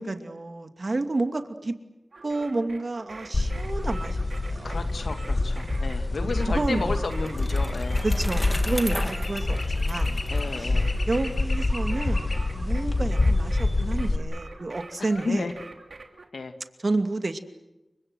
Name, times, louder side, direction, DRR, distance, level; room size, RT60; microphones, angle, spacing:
voice 1, 0.0-1.7 2.2-4.9 6.2-7.0 8.0-10.2 10.6-10.8 11.1-15.5 16.8-17.4, right 2 dB, 55° right, 7 dB, 2.6 m, -30 dB
sound 1, 2.1-16.3, right 3 dB, 70° right, 3.1 m, -44 dB
sound 2, 3.3-14.2, left 2 dB, 50° left, 2.6 m, -26 dB
voice 2, 4.6-8.0 10.3-10.9 15.1-15.5 16.3-16.5, left 3 dB, 85° left, 7 dB, 2.3 m, -32 dB
Bicycle, 6.3-11.4, equal, 10° left, 2.7 m, -38 dB
29.5 x 24.5 x 6.5 m, 0.99 s
cardioid pair, 50°, 0 cm